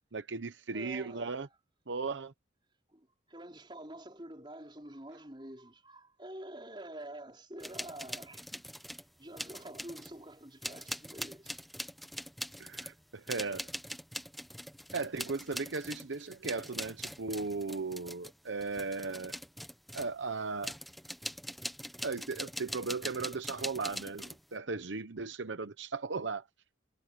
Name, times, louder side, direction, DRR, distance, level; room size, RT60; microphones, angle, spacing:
voice 1, 0.1-1.5 1.9-2.3 12.6-13.7 14.9-19.4 19.9-20.8 22.0-26.5, right 4 dB, 85° right, 0.9 m, -37 dB
voice 2, 0.7-1.5 2.9-8.7 9.2-11.6 12.4-12.6, right 1 dB, 25° right, 5.0 m, -48 dB
sound 1, 7.6-9.1 9.4-10.2 10.6-20.2 20.6-24.4, equal, ahead, 1.0 m, -42 dB
head